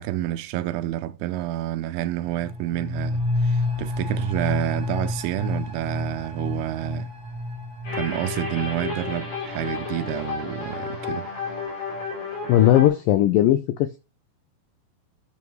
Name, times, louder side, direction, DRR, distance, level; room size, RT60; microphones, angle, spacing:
voice 1, 0.0-7.1 7.9-11.3, right 14 dB, 80° right, 2.4 m, -29 dB
sound 1, 2.2-11.6 11.9-12.0, left 2 dB, 15° left, 2.2 m, -30 dB
sound 2, 7.8-12.9, left 5 dB, 70° left, 7.3 m, -32 dB
voice 2, 12.5-14.0, left 12 dB, 85° left, 1.9 m, -18 dB
11.0 x 7.2 x 3.1 m
omnidirectional pair, 4.8 m